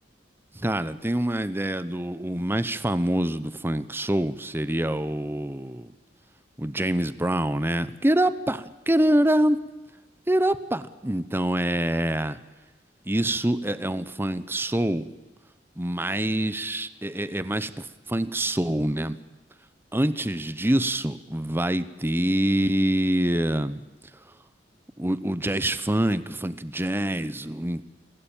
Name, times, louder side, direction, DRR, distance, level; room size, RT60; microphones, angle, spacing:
voice 1, 0.5-5.9 6.6-9.6 10.3-12.4 13.1-15.1 15.8-19.2 19.9-23.8 25.0-27.8, right 1 dB, 15° right, 14 dB, 0.9 m, -25 dB
26.5 x 17.5 x 9.0 m, 1.1 s
head